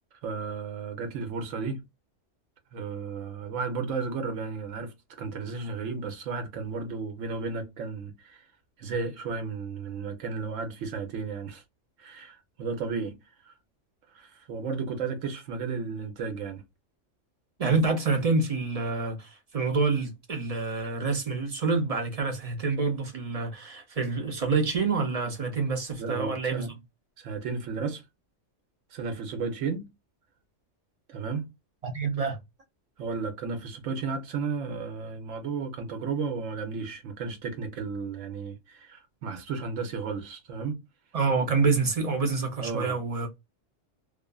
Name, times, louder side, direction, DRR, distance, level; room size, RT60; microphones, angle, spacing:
voice 1, 0.1-1.8 2.7-8.5 8.8-11.6 12.0-13.2 13.4-13.5 14.1-16.6 26.0-26.8 27.2-28.0 28.9-29.9 31.1-31.5 33.0-40.8 42.6-43.0, right 4 dB, 85° right, 1.1 m, -33 dB
voice 2, 17.6-26.7 31.8-32.4 41.1-43.3, right 4 dB, 40° right, 0.6 m, -27 dB
2.4 x 2.4 x 2.2 m
omnidirectional pair, 1.3 m